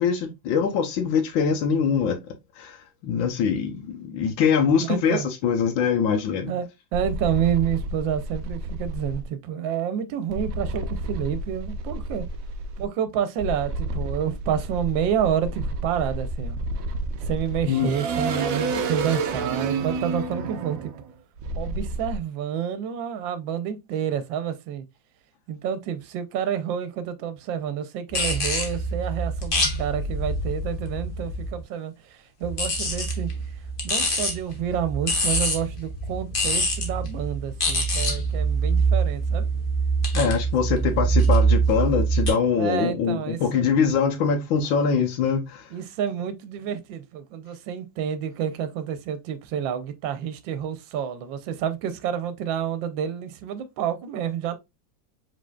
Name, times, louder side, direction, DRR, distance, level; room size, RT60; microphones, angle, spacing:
voice 1, 0.0-2.2 2.6-6.5 17.7-17.9 40.1-45.7, left 6 dB, 90° left, 1.6 m, -23 dB
voice 2, 4.9-5.3 6.5-6.7 6.9-12.2 12.8-16.6 17.3-20.9 21.6-24.8 25.5-33.3 33.8-39.5 42.6-43.6 45.7-54.6, right 9 dB, 85° right, 1.4 m, -29 dB
sound 1, 6.9-9.2 10.3-12.9 13.4-22.2, right 2 dB, 60° right, 0.9 m, -30 dB
sound 2, 28.1-31.6 32.4-42.3, right 2 dB, 35° left, 1.1 m, -25 dB
5.0 x 3.7 x 2.3 m
omnidirectional pair, 2.0 m